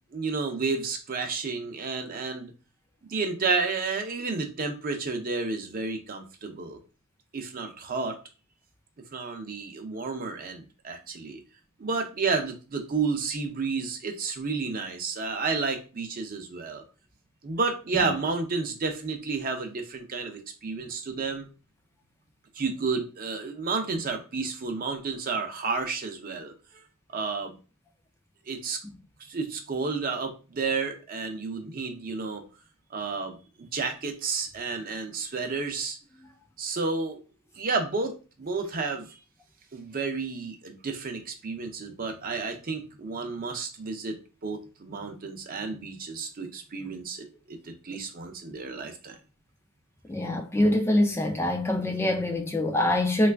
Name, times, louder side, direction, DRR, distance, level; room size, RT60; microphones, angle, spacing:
voice 1, 0.1-2.5 3.0-6.8 7.3-8.2 9.1-11.4 11.8-16.8 17.4-21.5 22.6-26.5 27.1-27.5 28.5-28.8 29.2-32.4 32.9-36.0 36.6-37.2 37.6-39.1 39.7-44.2 44.4-49.2, right 4 dB, 40° right, 0.5 m, -31 dB
voice 2, 50.1-53.3, left 1 dB, 10° left, 0.3 m, -24 dB
3.1 x 2.3 x 3.3 m
head